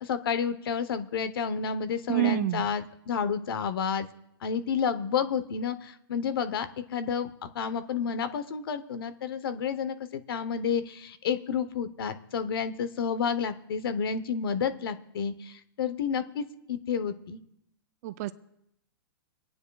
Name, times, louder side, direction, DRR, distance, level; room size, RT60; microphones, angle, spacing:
voice 1, 0.0-4.1 4.4-17.4, left 7 dB, 70° left, 12 dB, 0.9 m, -30 dB
voice 2, 2.1-2.7 18.0-18.3, right 17 dB, 40° right, 13 dB, 0.4 m, -27 dB
23.5 x 9.7 x 2.3 m, 0.79 s
hypercardioid pair, 140°, 13 cm